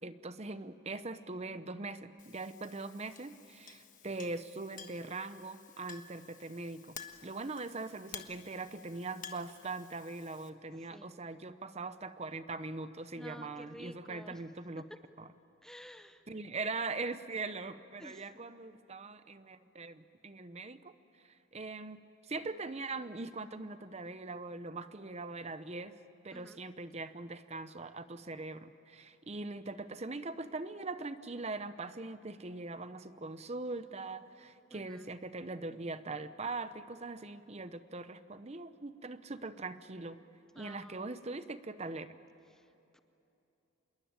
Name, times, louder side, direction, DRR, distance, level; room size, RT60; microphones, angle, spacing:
voice 1, 0.0-7.0 7.2-14.8 15.2-15.3 16.3-20.9 21.2-26.0 26.2-40.2 40.6-42.1, right 3 dB, 30° right, 12 dB, 0.8 m, -41 dB
Chink clink, 2.2-10.5, left 7 dB, 40° left, 1.3 m, -52 dB
voice 2, 10.7-11.1 13.1-14.4 14.9-15.0 15.6-16.2 18.0-18.4 26.3-26.6 34.7-35.1 40.5-41.1 42.5-43.0, equal, 5° left, 9 dB, 0.6 m, -52 dB
27.0 x 21.5 x 8.9 m, 2.9 s
head